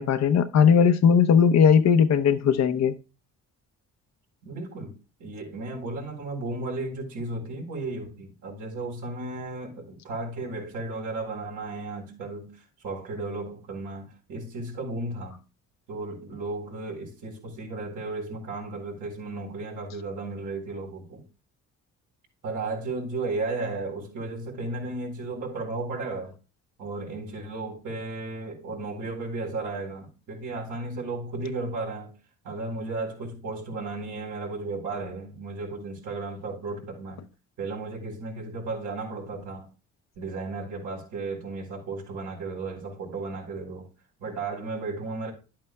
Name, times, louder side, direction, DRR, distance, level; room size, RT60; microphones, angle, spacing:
voice 1, 0.0-2.9, left 7 dB, 60° left, 0.8 m, -18 dB
voice 2, 4.4-4.9 5.2-15.4 15.9-21.2 22.4-26.3 26.8-32.1 32.4-37.2 37.6-39.7 40.2-43.9 44.2-45.3, right 3 dB, 80° right, 4.2 m, -34 dB
11.0 x 8.7 x 2.3 m
cardioid pair, 90°, 30 cm